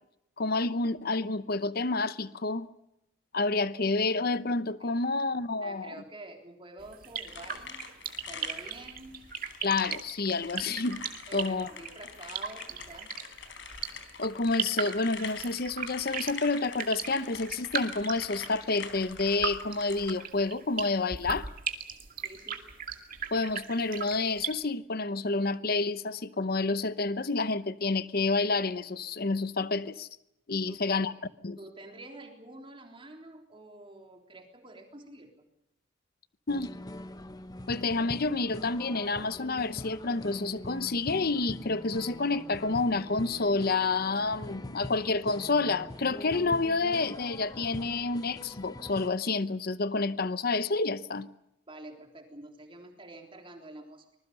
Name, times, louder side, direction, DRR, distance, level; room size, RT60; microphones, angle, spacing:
voice 1, 0.4-2.7 3.3-5.9 9.6-11.7 14.2-21.5 23.3-30.1 30.5-31.1 31.4-31.6 36.5-36.7 37.7-51.3, left 3 dB, 50° left, 0.8 m, -29 dB
voice 2, 5.6-7.8 8.3-9.2 11.3-13.2 22.2-22.7 30.7-31.0 31.6-35.4 51.7-54.2, right 2 dB, 25° right, 3.6 m, -48 dB
sound 1, 6.8-24.5, right 7 dB, 45° right, 2.4 m, -37 dB
sound 2, 7.3-20.1, left 6 dB, 65° left, 3.9 m, -45 dB
sound 3, 36.5-49.1, left 1 dB, 20° left, 1.0 m, -43 dB
25.0 x 21.0 x 6.9 m
head